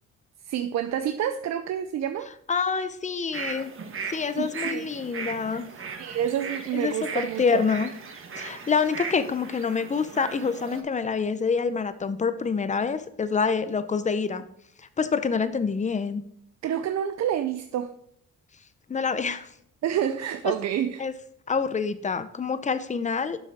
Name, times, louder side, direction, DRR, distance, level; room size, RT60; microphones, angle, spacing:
voice 1, 0.5-2.3 4.4-4.9 6.0-7.6 16.6-17.9 19.8-21.1, right 10 dB, 65° right, 0.5 m, -28 dB
voice 2, 2.5-3.7 4.1-5.7 6.7-7.9 8.4-14.4 14.8-16.2 18.9-19.5 20.4-20.5 21.0-21.1 21.5-23.4, left 5 dB, 25° left, 0.7 m, -26 dB
sound 1, 3.3-10.8, right 5 dB, 45° right, 1.2 m, -37 dB
7.6 x 6.1 x 3.5 m
cardioid pair, 90°, 30 cm